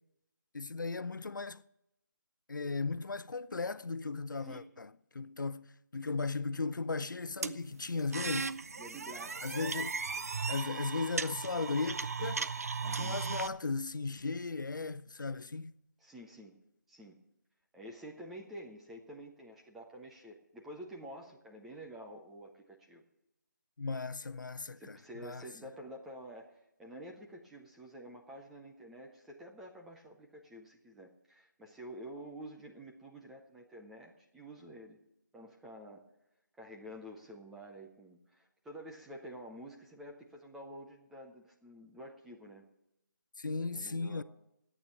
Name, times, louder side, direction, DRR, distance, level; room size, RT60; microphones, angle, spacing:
voice 1, 0.5-1.7 2.5-8.6 9.4-10.0 10.5-12.6 12.9-15.7 23.8-25.5 43.4-44.2, left 4 dB, 85° left, 0.7 m, -36 dB
sound 1, 7.4-13.5, right 4 dB, 50° right, 0.6 m, -37 dB
voice 2, 8.8-9.5 12.8-13.2 16.0-16.6 16.9-17.2 17.7-23.0 24.8-35.0 35.3-36.0 36.6-42.6 43.6-44.2, right 1 dB, ahead, 0.5 m, -49 dB
11.5 x 8.9 x 8.2 m
figure-of-eight pair, 170°, 10 cm